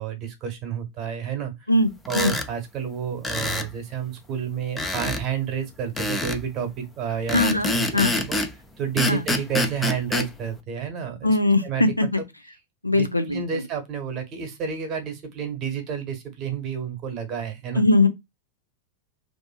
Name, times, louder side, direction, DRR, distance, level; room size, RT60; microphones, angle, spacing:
voice 1, 0.0-1.5 2.1-8.4 8.8-11.4 11.6-12.3 12.9-17.9, right 7 dB, 35° right, 1.0 m, -30 dB
voice 2, 1.7-2.4 7.3-8.1 9.1-9.2 11.2-12.2 12.8-13.4 17.7-18.1, left 2 dB, 85° left, 0.4 m, -21 dB
sound 1, 2.1-2.5 3.2-3.7 4.8-5.2 6.0-6.4 7.3-8.5 9.0-10.3, left 2 dB, 10° left, 0.4 m, -26 dB
2.5 x 2.5 x 2.3 m
figure-of-eight pair, 90°, 0 cm